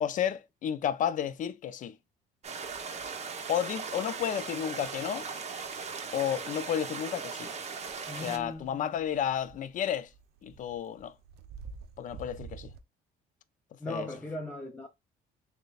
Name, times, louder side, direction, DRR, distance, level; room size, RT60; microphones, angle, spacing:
voice 1, 0.0-2.0 3.5-5.3 6.1-7.5 8.1-10.1 10.4-11.1 12.0-12.7 13.9-14.1, left 9 dB, 50° left, 0.4 m, -32 dB
sound 1, 2.4-8.4, right 5 dB, 40° right, 1.0 m, -38 dB
sound 2, 7.9-8.0 8.4-12.8, right 6 dB, 70° right, 0.7 m, -48 dB
voice 2, 8.1-9.0 13.8-14.9, left 1 dB, 10° left, 0.6 m, -39 dB
6.3 x 2.2 x 2.4 m
cardioid pair, 110°, 17 cm